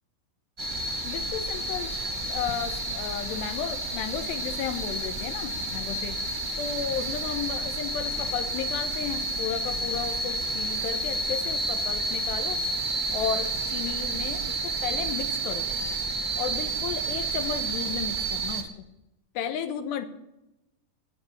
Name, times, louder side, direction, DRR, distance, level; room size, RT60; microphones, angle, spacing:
sound 1, 0.6-18.6, right 2 dB, 25° right, 0.9 m, -30 dB
voice 1, 1.0-1.9 2.3-6.2 6.6-12.6 13.1-15.7 16.4-18.7 19.3-20.1, left 8 dB, 80° left, 9 dB, 3.2 m, -33 dB
18.5 x 8.8 x 6.8 m, 0.92 s
omnidirectional pair, 5.1 m